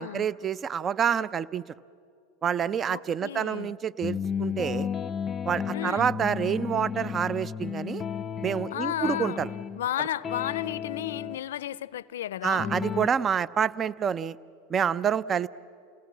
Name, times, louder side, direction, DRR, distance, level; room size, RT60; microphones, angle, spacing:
voice 1, 0.0-1.6 2.4-4.9 5.5-8.0 8.4-9.5 12.4-14.4 14.7-15.5, right 8 dB, 35° right, 0.5 m, -27 dB
voice 2, 2.9-3.7 5.7-6.2 8.7-9.4 9.7-12.7, left 12 dB, 80° left, 0.5 m, -33 dB
sound 1, 4.0-9.9 10.2-11.4 12.6-13.1, left 7 dB, 30° left, 0.6 m, -33 dB
29.0 x 18.0 x 7.4 m
hypercardioid pair, 90°, 0 cm